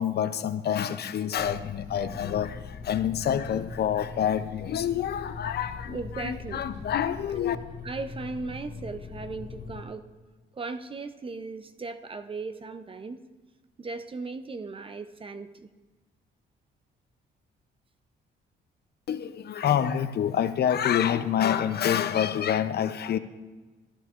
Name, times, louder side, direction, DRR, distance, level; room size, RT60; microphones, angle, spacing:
voice 1, 0.0-7.6 19.1-23.2, left 9 dB, 55° left, 0.5 m, -27 dB
sound 1, 1.4-9.8, left 5 dB, 40° left, 2.9 m, -41 dB
voice 2, 5.9-6.6 7.8-10.1 10.5-13.2 13.8-15.7, right 3 dB, 25° right, 0.5 m, -37 dB
13.0 x 11.0 x 2.4 m
cardioid pair, 90°, 20 cm